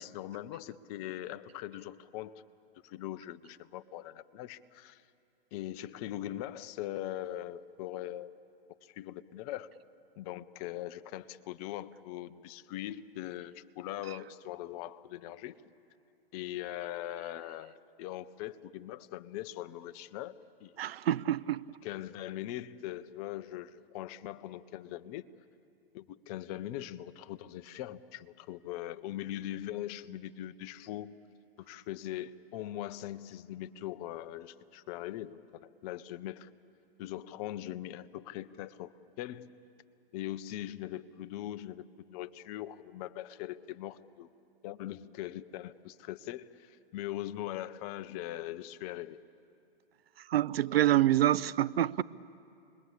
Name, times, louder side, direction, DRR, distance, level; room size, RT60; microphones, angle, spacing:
voice 1, 0.0-2.4 2.8-5.0 5.5-8.4 8.8-9.7 10.2-15.5 16.3-20.3 20.6-20.7 21.8-25.2 25.9-31.1 31.6-36.5 37.0-38.9 39.2-39.5 40.1-44.3 44.6-49.2, left 13 dB, 40° left, 12 dB, 0.8 m, -41 dB
voice 2, 20.8-21.6 50.3-52.0, right 12 dB, 75° right, 18 dB, 0.6 m, -26 dB
28.5 x 21.5 x 8.3 m, 2.6 s
hypercardioid pair, 125°, 30 cm